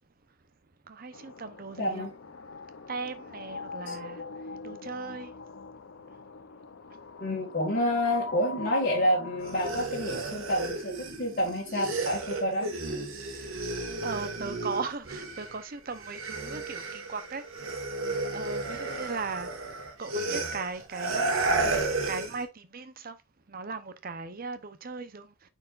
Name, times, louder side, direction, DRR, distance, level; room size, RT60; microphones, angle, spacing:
voice 1, 0.9-2.1 2.9-4.2 4.6-5.3 13.4-13.5 14.0-17.4 18.3-19.5 20.0-21.3 22.1-23.2 23.5-25.3, right 4 dB, 45° right, 0.7 m, -37 dB
sound 1, 1.1-9.8, left 4 dB, 65° left, 0.5 m, -42 dB
voice 2, 1.8-2.1 3.9-4.0 7.2-10.9 11.2-12.7 18.1-18.3, equal, 45° left, 1.8 m, -28 dB
sound 2, 9.4-15.6 15.9-22.4, right 3 dB, 75° right, 1.7 m, -33 dB
9.2 x 4.6 x 2.4 m
head